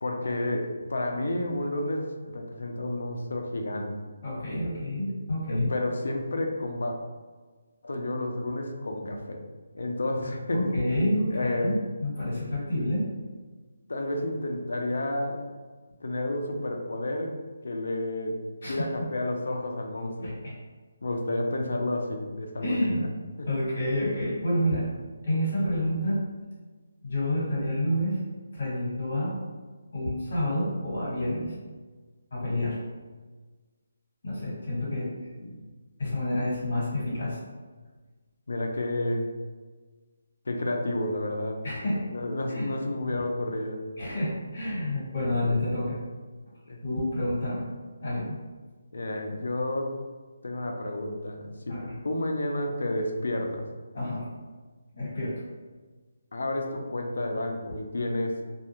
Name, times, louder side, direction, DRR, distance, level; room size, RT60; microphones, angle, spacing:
voice 1, 0.0-4.0 5.5-7.0 7.8-9.4 9.7-10.7 11.3-11.7 13.9-15.5 16.0-17.4 17.6-20.4 21.0-23.1 23.4-23.5 35.0-35.6 38.5-39.3 40.5-43.8 44.9-45.0 46.7-46.8 48.9-50.0 50.4-53.7 56.3-58.4, left 1 dB, 65° left, 3 dB, 0.4 m, -31 dB
voice 2, 4.2-5.7 10.5-13.1 18.6-18.8 20.2-20.3 22.6-23.1 23.4-24.9 25.2-26.2 27.0-28.2 28.5-29.3 29.9-31.5 32.3-32.8 34.2-35.1 36.0-37.4 41.6-42.0 42.5-42.7 44.0-46.0 46.8-47.7 48.0-48.4 51.7-51.9 53.9-54.3 54.9-55.3, left 1 dB, 35° left, -8 dB, 1.3 m, -28 dB
2.3 x 2.2 x 2.9 m, 1.4 s
hypercardioid pair, 180°, 0 cm